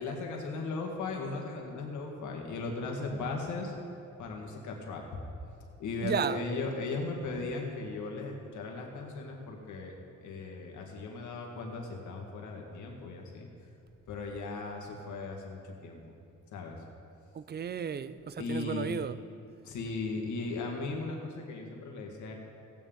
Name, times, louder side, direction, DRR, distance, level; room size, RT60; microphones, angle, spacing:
voice 1, 0.0-3.7 4.2-5.0 5.8-10.0 10.2-13.5 14.1-16.0 16.5-16.8 18.4-18.9 19.6-22.3, left 3 dB, 75° left, 1.9 m, -37 dB
voice 2, 6.0-6.4 17.3-19.1, right 7 dB, 35° right, 0.5 m, -33 dB
16.0 x 9.0 x 3.9 m
cardioid pair, 90°, 30 cm